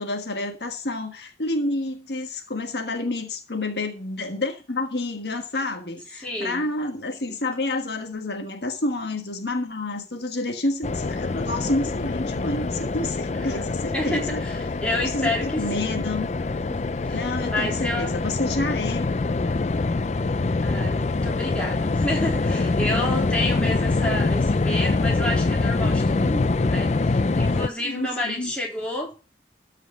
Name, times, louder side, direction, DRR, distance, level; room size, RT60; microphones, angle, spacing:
voice 1, 0.0-14.4 15.1-16.3 17.1-19.1 27.8-28.5, left 2 dB, 70° left, 1.5 m, -29 dB
voice 2, 6.2-6.7 13.3-13.7 13.9-15.9 16.7-18.2 20.6-29.1, left 1 dB, 5° left, 3.5 m, -30 dB
sound 1, 10.8-27.7, left 3 dB, 40° left, 0.4 m, -24 dB
13.5 x 5.1 x 6.4 m
head